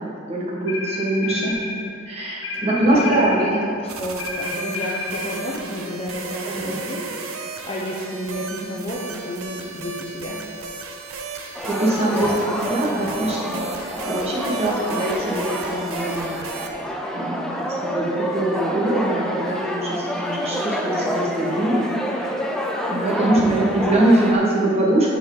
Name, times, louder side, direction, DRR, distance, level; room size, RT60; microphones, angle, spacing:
voice 1, 0.0-1.5 2.1-3.5 6.5-6.8 11.4-12.3 12.6-16.4 17.1-22.2 22.9-25.2, right 1 dB, 30° right, -4 dB, 1.3 m, -23 dB
sound 1, 0.7-1.7 2.4-3.4 4.2-5.2, left 3 dB, 70° left, 1.2 m, -30 dB
voice 2, 1.2-1.8 2.5-3.1 3.4-3.6 4.0-10.4 12.1-12.3 12.8-13.1 23.1-23.5, equal, 30° left, -3 dB, 0.9 m, -30 dB
sound 2, 3.9-16.7, right 4 dB, 80° right, 0.7 m, -35 dB
sound 3, 11.5-24.3, equal, 5° left, 0.5 m, -27 dB
13.0 x 4.6 x 3.8 m, 2.4 s
head